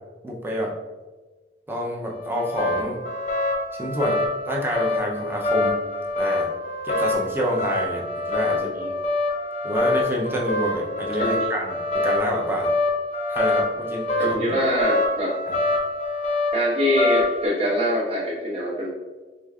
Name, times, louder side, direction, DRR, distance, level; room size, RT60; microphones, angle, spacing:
voice 1, 0.2-0.7 1.7-3.0 3.7-5.8 6.2-6.5 6.8-8.9 9.6-12.7 13.3-14.4 15.5-15.6, equal, 10° right, -1 dB, 0.5 m, -28 dB
sound 1, 2.1-17.5, left 2 dB, 35° left, 0.6 m, -26 dB
voice 2, 8.5-8.9 11.2-11.4 14.2-15.3 16.5-18.9, equal, 30° right, -5 dB, 1.1 m, -24 dB
5.0 x 3.2 x 2.4 m, 1.3 s
head